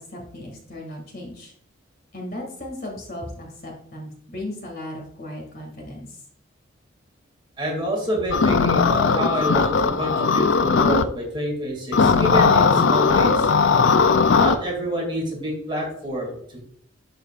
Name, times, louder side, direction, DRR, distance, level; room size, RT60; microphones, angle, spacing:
voice 1, 0.1-1.5 2.1-6.2, left 1 dB, 45° left, 0 dB, 2.1 m, -36 dB
voice 2, 7.6-13.5 14.4-16.6, right 1 dB, 25° right, -2 dB, 2.3 m, -27 dB
sound 1, 8.3-11.0 11.9-14.5, left 5 dB, 65° left, 0.4 m, -18 dB
11.5 x 5.0 x 2.4 m, 0.66 s
head